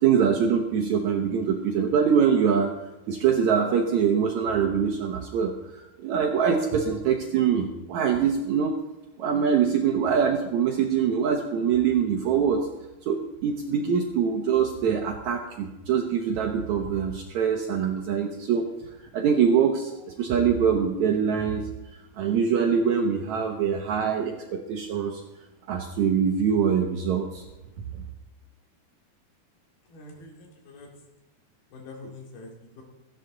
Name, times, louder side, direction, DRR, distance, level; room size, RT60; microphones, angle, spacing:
voice 1, 0.0-2.8 3.1-8.7 9.2-12.7 13.1-18.7 19.1-19.9 20.2-21.7 22.2-25.2 25.7-27.4, right 7 dB, 70° right, 3 dB, 1.8 m, -24 dB
voice 2, 29.9-30.9 31.7-32.8, left 2 dB, 80° left, 0 dB, 4.2 m, -45 dB
16.5 x 14.0 x 3.9 m, 0.98 s
omnidirectional pair, 4.3 m